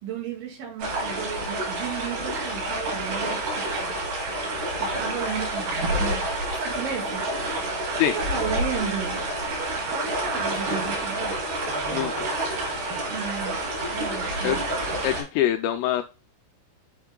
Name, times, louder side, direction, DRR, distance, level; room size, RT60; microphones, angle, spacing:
voice 1, 0.0-4.0 4.3-4.4 4.8-7.3 8.0-9.2 9.9-11.4 13.1-13.6 13.9-14.6, right 7 dB, 75° right, 0 dB, 4.4 m, -34 dB
sound 1, 0.8-15.2, right 1 dB, 60° right, 5.3 m, -28 dB
voice 2, 15.0-16.0, left 12 dB, 85° left, 6 dB, 2.5 m, -24 dB
9.5 x 4.6 x 2.2 m, 0.31 s
omnidirectional pair, 5.4 m